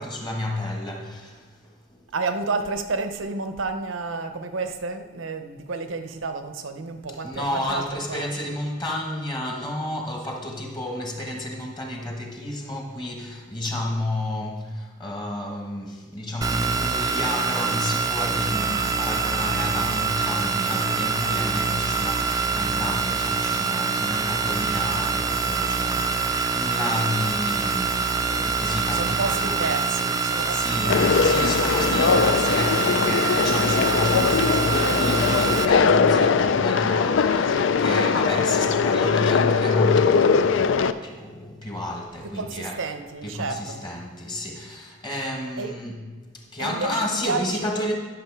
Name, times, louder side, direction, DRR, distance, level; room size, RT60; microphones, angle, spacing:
voice 1, 0.0-2.0 7.2-29.6 30.5-42.7 43.2-46.0 46.3-47.9, left 1 dB, 20° left, 1 dB, 1.3 m, -31 dB
voice 2, 2.1-8.6 28.9-31.3 42.2-43.8 45.6-45.7 46.6-47.8, right 4 dB, 85° right, 8 dB, 0.8 m, -31 dB
sound 1, 16.4-35.7, right 5 dB, 20° right, 0.4 m, -25 dB
Conversation, 30.9-40.9, left 5 dB, 70° left, 0.4 m, -21 dB
11.0 x 6.5 x 4.7 m, 1.4 s
head